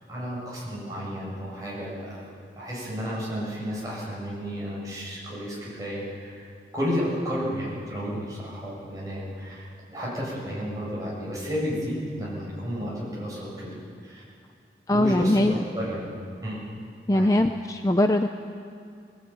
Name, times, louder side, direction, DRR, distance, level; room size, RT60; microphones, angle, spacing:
voice 1, 0.1-2.2 2.6-6.5 6.7-13.7 14.0-14.2 14.9-16.1 16.4-16.6 17.1-17.3, equal, 20° right, -6 dB, 7.3 m, -32 dB
voice 2, 14.9-15.6 17.1-18.3, left 1 dB, 20° left, 6 dB, 0.5 m, -21 dB
19.0 x 18.5 x 9.1 m, 2.3 s
head